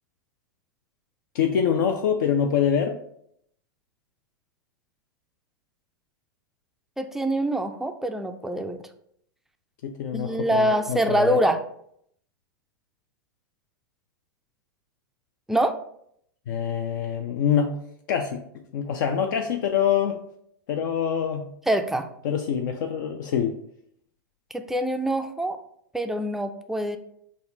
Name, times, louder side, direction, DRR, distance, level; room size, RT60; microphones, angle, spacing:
voice 1, 1.3-3.0 9.8-11.4 16.5-17.8 18.1-18.4 18.7-20.2 20.7-21.4 22.2-23.5, left 8 dB, 65° left, 4 dB, 0.4 m, -25 dB
voice 2, 7.0-8.8 10.1-11.6 15.5-15.8 21.7-22.1 24.5-25.6 25.9-27.0, right 1 dB, 5° right, 7 dB, 0.3 m, -25 dB
4.1 x 2.4 x 3.9 m, 0.70 s
hypercardioid pair, 105°, 11 cm